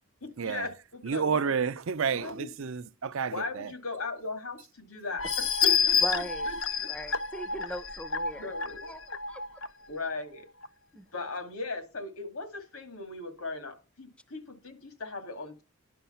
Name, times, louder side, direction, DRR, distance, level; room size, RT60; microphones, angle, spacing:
voice 1, 0.2-1.5 2.1-2.5 3.3-6.9 8.3-8.9 9.9-10.5 11.1-15.6, left 3 dB, 75° left, 2.3 m, -38 dB
voice 2, 1.0-3.7, right 6 dB, 65° right, 0.5 m, -30 dB
sound 1, 5.2-9.7 10.2-10.3 10.6-10.7, left 6 dB, 60° left, 0.7 m, -29 dB
voice 3, 6.0-6.5 6.9-8.5 8.9-9.6 10.9-11.1, equal, 5° left, 0.5 m, -39 dB
10.0 x 6.3 x 5.6 m
head